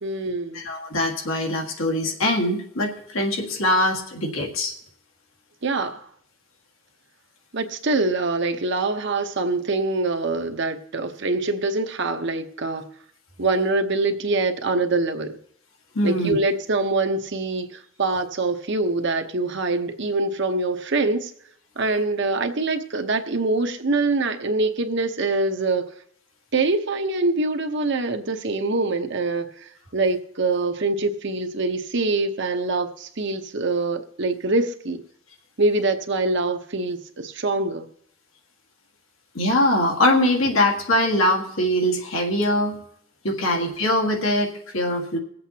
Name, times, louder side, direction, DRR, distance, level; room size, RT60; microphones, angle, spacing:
voice 1, 0.0-0.6 5.6-6.1 7.5-12.9 13.4-15.4 16.0-21.3 21.8-25.8 26.5-35.0 35.6-37.9, right 3 dB, 60° right, 0.9 m, -24 dB
voice 2, 0.5-4.7 16.0-16.4 39.4-42.8 43.2-45.2, left 1 dB, 85° left, 1.8 m, -22 dB
23.5 x 7.9 x 2.9 m
head